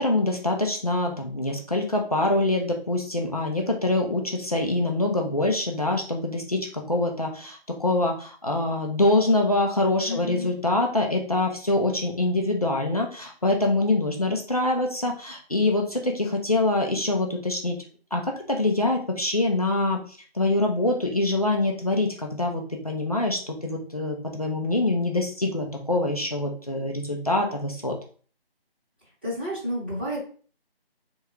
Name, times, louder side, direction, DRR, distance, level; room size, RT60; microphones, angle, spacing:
voice 1, 0.0-17.7 18.1-20.0 20.3-28.0, left 2 dB, 40° left, 1 dB, 0.5 m, -25 dB
voice 2, 10.0-10.5 29.2-30.2, left 1 dB, 10° right, -13 dB, 1.0 m, -30 dB
3.5 x 2.3 x 3.0 m, 0.42 s
figure-of-eight pair, 165°, 31 cm